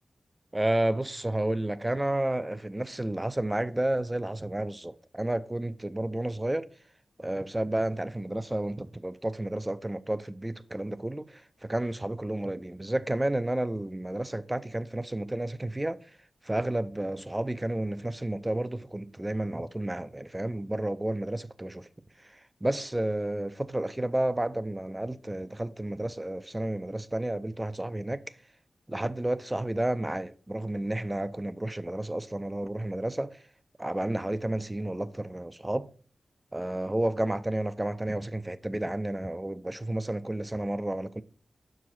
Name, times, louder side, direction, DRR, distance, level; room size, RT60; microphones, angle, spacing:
voice 1, 0.5-6.7 7.2-16.1 16.4-21.9 22.2-28.4 28.9-33.4 33.8-35.9 36.5-41.2, right 1 dB, 20° right, 0.5 m, -31 dB
6.0 x 4.8 x 5.8 m
cardioid pair, 60°, 0 cm